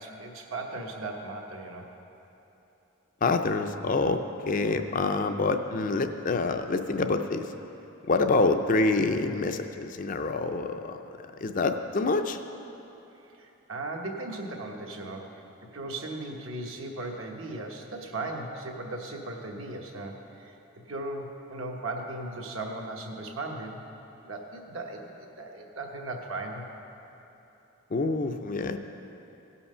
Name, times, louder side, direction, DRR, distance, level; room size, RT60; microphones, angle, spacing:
voice 1, 0.0-1.9 13.4-15.4 15.7-20.5 20.9-23.8 24.2-26.6, right 2 dB, 70° right, 1 dB, 1.2 m, -37 dB
voice 2, 3.2-4.2 4.5-7.5 8.1-11.0 11.4-12.4 27.9-28.8, left 3 dB, 40° left, 7 dB, 0.4 m, -26 dB
16.5 x 5.7 x 5.5 m, 3.0 s
head